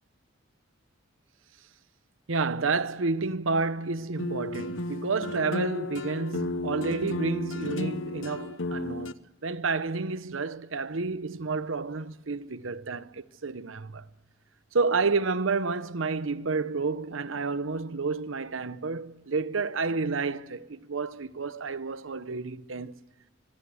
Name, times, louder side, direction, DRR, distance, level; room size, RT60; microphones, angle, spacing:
voice 1, 2.3-9.1 9.4-14.1 14.7-23.0, right 4 dB, 90° right, 0.9 m, -30 dB
sound 1, 4.2-9.1, left 2 dB, 75° left, 0.8 m, -33 dB
25.0 x 22.5 x 7.7 m
head